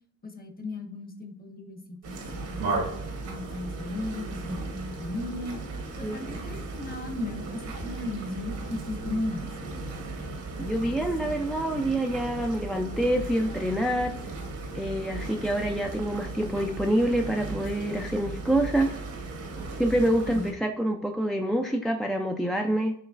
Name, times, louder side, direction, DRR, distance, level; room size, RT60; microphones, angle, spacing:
voice 1, 0.2-2.8 3.2-5.6 6.0-9.5 20.2-20.5, left 2 dB, 30° left, 5 dB, 1.0 m, -36 dB
sound 1, 2.0-20.5, right 3 dB, 80° right, 1.3 m, -36 dB
voice 2, 10.6-14.2 14.7-19.0 19.8-22.9, right 1 dB, ahead, 2 dB, 0.3 m, -26 dB
5.3 x 3.0 x 2.4 m, 0.69 s
cardioid pair, 90°, 30 cm